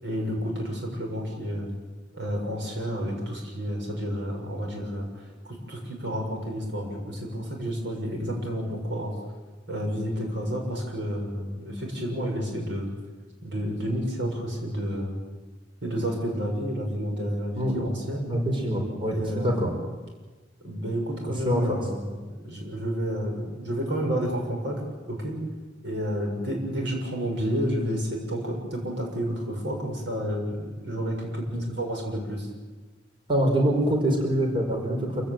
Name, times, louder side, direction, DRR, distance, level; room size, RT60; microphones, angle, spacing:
voice 1, 0.0-1.7 2.1-9.2 9.7-12.9 13.4-15.2 15.8-18.3 19.1-19.7 20.6-25.4 25.8-31.5 31.8-32.5, equal, 70° right, 1 dB, 7.0 m, -30 dB
voice 2, 18.3-19.7 21.5-21.8 31.5-31.6 33.3-35.3, equal, 30° right, 1 dB, 5.1 m, -25 dB
27.0 x 16.5 x 9.1 m, 1.3 s
head